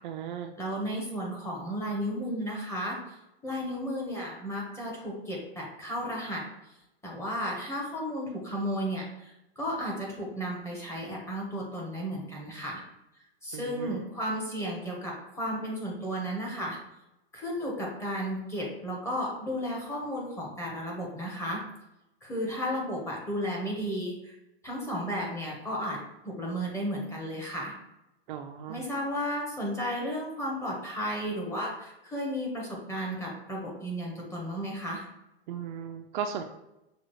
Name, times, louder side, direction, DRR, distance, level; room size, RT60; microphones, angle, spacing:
voice 1, 0.0-0.5 13.5-14.0 28.3-28.8 35.5-36.4, right 8 dB, 55° right, 5 dB, 0.4 m, -36 dB
voice 2, 0.6-3.0 3.4-6.4 7.0-12.8 13.4-16.8 17.3-21.6 22.2-24.4 24.6-26.0 26.2-27.7 28.7-35.0, equal, 10° left, -3 dB, 0.9 m, -33 dB
6.2 x 2.3 x 3.0 m, 0.91 s
supercardioid pair, 150°, 30 cm